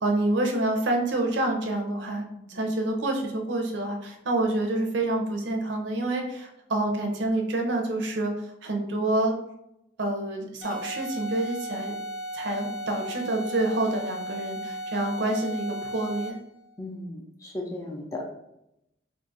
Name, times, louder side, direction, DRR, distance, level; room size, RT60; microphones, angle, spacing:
voice 1, 0.0-2.2 2.5-8.3 8.6-9.4 10.0-11.9 12.3-16.4, right 2 dB, 70° right, 2 dB, 0.6 m, -27 dB
sound 1, 10.6-16.5, right 1 dB, 80° left, 0.7 m, -36 dB
voice 2, 16.8-18.3, left 1 dB, 15° left, -1 dB, 0.4 m, -36 dB
2.7 x 2.4 x 3.9 m, 0.83 s
head